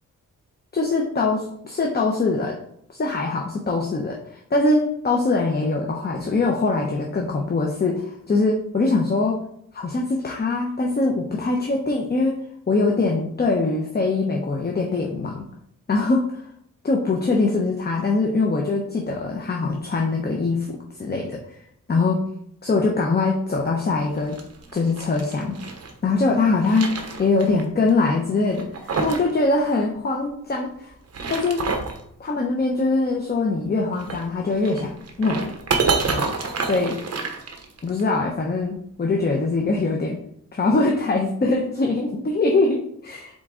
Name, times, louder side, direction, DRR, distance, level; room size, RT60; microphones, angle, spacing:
voice 1, 0.7-2.6 2.9-9.4 9.7-12.4 12.7-15.5 15.9-16.4 16.8-21.4 21.9-22.2 22.6-24.4 24.7-25.5 26.0-26.9 27.2-28.7 29.0-30.9 31.3-31.6 32.2-34.9 35.2-35.5 36.1-36.2 36.6-37.0 37.8-40.2 40.5-43.4, left 3 dB, 30° left, 0 dB, 0.9 m, -22 dB
sound 1, 24.1-25.9 26.4-27.6 27.9-28.0 28.5-29.3 29.6-29.7 30.9-32.0 33.9-38.0, right 4 dB, 50° right, 1.1 m, -28 dB
7.8 x 3.7 x 3.8 m, 0.70 s
wide cardioid pair, 115°, 32 cm